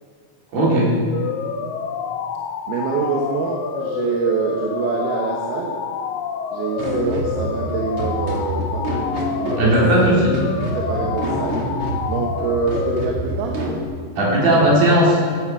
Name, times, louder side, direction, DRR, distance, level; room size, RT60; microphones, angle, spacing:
voice 1, 0.5-1.0 9.6-10.4 14.2-15.2, right 1 dB, 70° right, -5 dB, 5.6 m, -16 dB
sound 1, 1.1-13.1, left 7 dB, 70° left, 2.0 m, -28 dB
voice 2, 2.7-5.8 6.5-8.9 9.4-10.0 10.7-11.5 12.0-13.6, right 5 dB, 85° right, 0 dB, 3.1 m, -25 dB
sound 2, 6.8-13.8, equal, 45° right, 2.5 m, -27 dB
16.0 x 13.0 x 4.8 m, 2.2 s
omnidirectional pair, 4.3 m